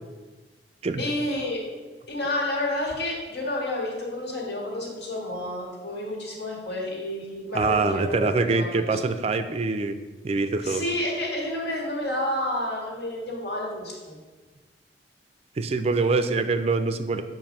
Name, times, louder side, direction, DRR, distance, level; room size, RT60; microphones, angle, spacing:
voice 1, 1.0-1.6 2.1-8.9 10.6-14.2, left 1 dB, 80° left, -2 dB, 1.7 m, -30 dB
voice 2, 7.5-10.0 10.2-10.8 15.6-17.2, right 3 dB, 35° right, 9 dB, 0.3 m, -24 dB
7.2 x 2.6 x 5.2 m, 1.3 s
head